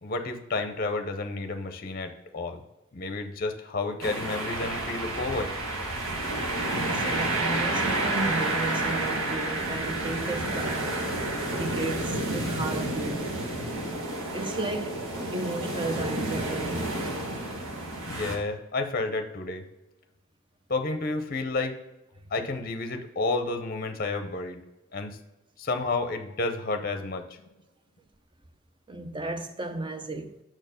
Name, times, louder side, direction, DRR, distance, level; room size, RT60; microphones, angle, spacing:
voice 1, 0.0-2.6 2.9-5.5 18.1-19.6 20.7-21.8 22.3-24.6 24.9-25.2 25.6-27.2, left 3 dB, 45° left, 0.6 m, -31 dB
sound 1, 4.0-18.4, right 2 dB, 85° right, 1.4 m, -30 dB
voice 2, 6.7-11.0 11.5-13.3 14.3-15.0 15.3-16.8 28.9-30.4, right 2 dB, 20° right, 0.5 m, -34 dB
6.2 x 4.4 x 5.0 m
head